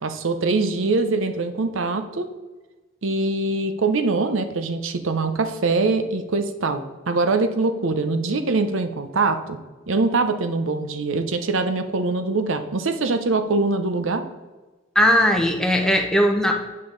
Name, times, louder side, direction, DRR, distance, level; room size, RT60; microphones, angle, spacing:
voice 1, 0.0-2.3 3.0-9.6 9.9-14.2, right 3 dB, 75° right, 8 dB, 0.7 m, -23 dB
voice 2, 14.9-16.5, equal, 5° left, 2 dB, 0.9 m, -18 dB
8.8 x 5.4 x 3.9 m, 1.2 s
head